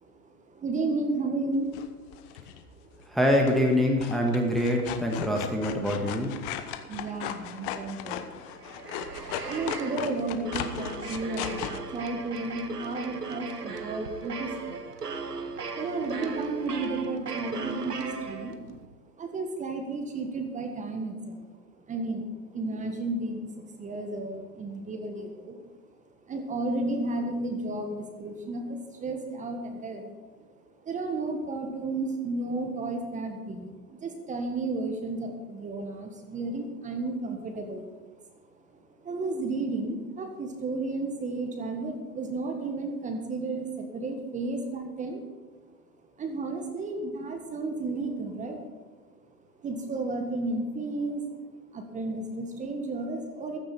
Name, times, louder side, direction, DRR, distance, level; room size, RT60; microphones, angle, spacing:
voice 1, 0.0-2.1 2.8-2.9 6.6-14.9 15.7-18.5 19.2-21.4 21.9-25.6 26.3-30.1 30.6-38.0 39.0-45.2 46.2-48.6 49.6-53.6, right 2 dB, 15° right, 4 dB, 1.7 m, -33 dB
sound 1, 1.7-2.6 3.5-3.7 4.0-11.8, left 10 dB, 35° left, 1.1 m, -37 dB
voice 2, 3.1-6.3, equal, ahead, 0 dB, 1.6 m, -25 dB
sound 2, 8.4-18.8, right 4 dB, 75° right, 1.5 m, -37 dB
15.0 x 13.5 x 4.4 m, 1.4 s
figure-of-eight pair, 105°, 47 cm